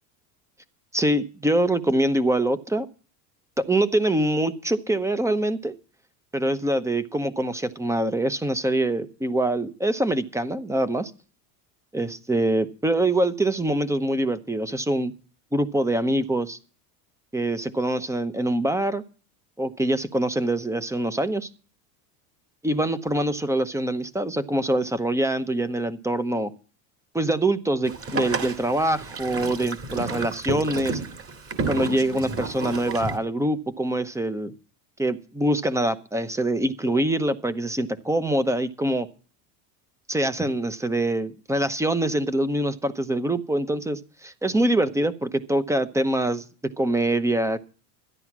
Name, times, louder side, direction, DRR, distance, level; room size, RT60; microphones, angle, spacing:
voice 1, 0.9-2.9 3.6-5.7 6.3-11.1 11.9-15.1 15.5-16.6 17.3-19.0 19.6-21.5 22.6-26.5 27.1-31.0 31.7-34.5 35.0-39.1 40.1-46.4 46.8-47.6, right 1 dB, 5° right, 14 dB, 0.8 m, -24 dB
Boat Water vehicle, 27.8-33.2, right 4 dB, 30° right, 2.3 m, -31 dB
13.0 x 10.5 x 6.0 m, 0.38 s
supercardioid pair, 130°, 48 cm